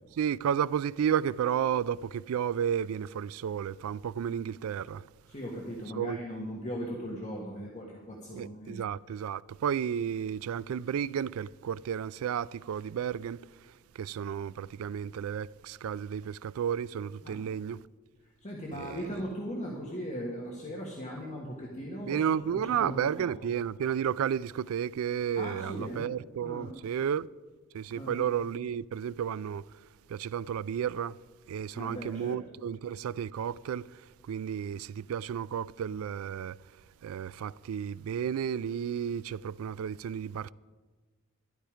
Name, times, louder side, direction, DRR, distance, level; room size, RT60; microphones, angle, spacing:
voice 1, 0.2-5.0 5.9-6.2 8.3-13.4 14.0-17.8 18.7-19.0 22.1-27.3 27.7-29.6 30.1-31.1 31.5-33.9 34.3-36.6 37.0-40.5, right 8 dB, 70° right, 0.3 m, -32 dB
voice 2, 5.3-8.8 17.2-17.4 18.4-22.2 22.5-23.3 25.4-26.1 26.4-26.7 27.9-28.2 31.7-32.4, equal, 35° left, 1.6 m, -38 dB
12.0 x 11.5 x 5.0 m
head